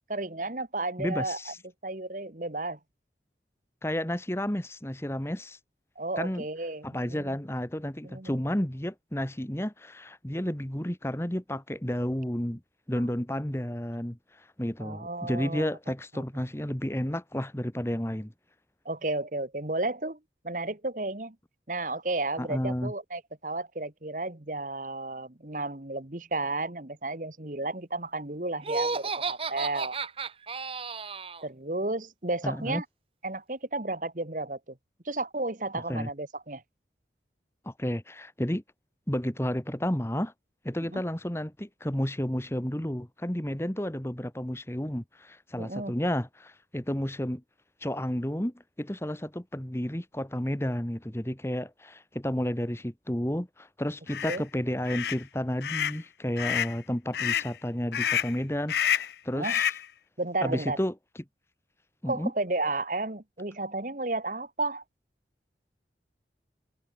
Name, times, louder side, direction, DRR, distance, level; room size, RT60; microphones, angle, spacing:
voice 1, 0.1-1.5 1.8-2.8 6.0-7.3 8.0-8.4 14.8-15.7 16.1-16.2 18.9-20.2 20.4-21.4 21.7-30.0 31.4-32.9 33.2-34.8 35.1-36.6 40.9-41.0 45.6-45.9 54.3-54.4 59.3-59.6 60.2-60.8 62.1-64.8, right 2 dB, 45° right, 1.7 m, -33 dB
voice 2, 1.0-1.6 3.8-5.6 6.2-6.4 6.8-12.6 12.9-18.3 22.4-22.9 32.4-32.8 35.7-36.1 37.6-38.6 39.1-40.3 40.6-47.4 47.8-59.7 60.4-60.9 62.0-62.3, equal, 15° left, 1.4 m, -31 dB
Laughter, 28.6-31.4, right 4 dB, 30° right, 1.1 m, -32 dB
sound 1, 54.1-54.4 54.9-55.2 55.6-56.0 56.4-56.8 57.1-57.5 57.9-58.4 58.7-59.1 59.4-59.9, left 9 dB, 70° left, 0.4 m, -28 dB
head